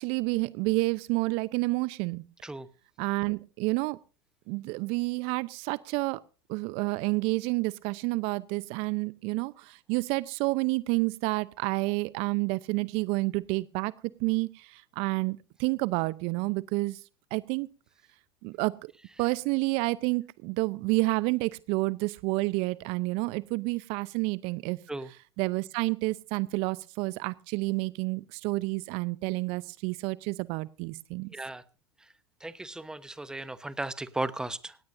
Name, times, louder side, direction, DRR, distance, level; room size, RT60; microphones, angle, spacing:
voice 1, 0.0-2.2 3.0-4.0 4.5-6.2 6.5-13.9 14.2-17.0 17.3-17.7 18.4-18.9 19.2-24.8 25.4-31.3, right 24 dB, 50° right, 20 dB, 0.7 m, -29 dB
voice 2, 31.3-31.6 32.4-34.8, right 2 dB, 5° right, 16 dB, 1.0 m, -35 dB
18.0 x 17.0 x 2.6 m, 0.33 s
hypercardioid pair, 90°, 12 cm